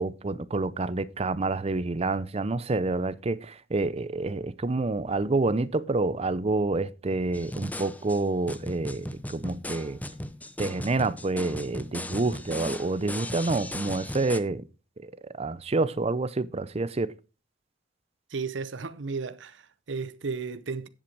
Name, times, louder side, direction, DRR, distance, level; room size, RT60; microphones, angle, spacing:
voice 1, 0.0-10.0 10.6-14.6 15.0-15.1 15.4-17.1, right 3 dB, 30° right, 0.5 m, -28 dB
sound 1, 7.3-14.4, left 1 dB, 10° left, 0.6 m, -37 dB
voice 2, 18.3-20.9, right 4 dB, 65° right, 0.7 m, -34 dB
10.0 x 7.8 x 4.6 m
head